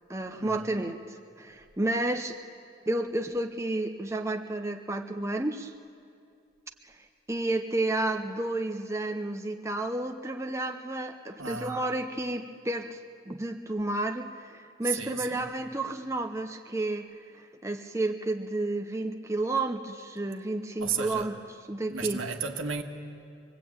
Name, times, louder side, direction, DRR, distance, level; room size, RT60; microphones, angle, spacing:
voice 1, 0.1-2.4 2.9-5.7 7.3-13.0 13.3-17.1 17.3-21.4 21.7-22.3, right 2 dB, 15° right, 4 dB, 0.8 m, -31 dB
voice 2, 11.4-11.8 14.8-15.5 20.8-21.3 21.9-22.8, right 6 dB, 80° right, 4 dB, 1.7 m, -33 dB
25.5 x 20.0 x 8.7 m, 2.4 s
head